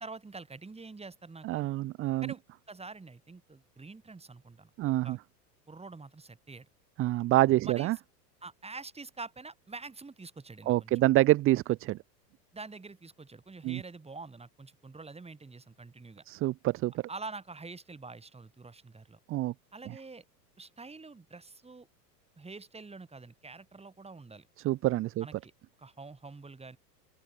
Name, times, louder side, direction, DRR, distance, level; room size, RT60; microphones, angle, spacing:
voice 1, 0.0-1.7 2.2-2.4 2.7-4.7 5.0-5.2 5.7-6.7 7.6-7.9 8.4-10.9 12.5-16.2 17.1-19.2 19.7-20.2 20.6-21.9 22.4-24.5 25.2-25.5 25.8-26.8, right 3 dB, 10° right, 6.9 m, -46 dB
voice 2, 1.4-2.3 4.8-5.2 7.0-8.0 10.7-12.0 13.6-13.8 16.3-16.9 19.3-19.5 24.6-25.3, right 16 dB, 25° right, 0.6 m, -26 dB
open air
hypercardioid pair, 100°, 50 cm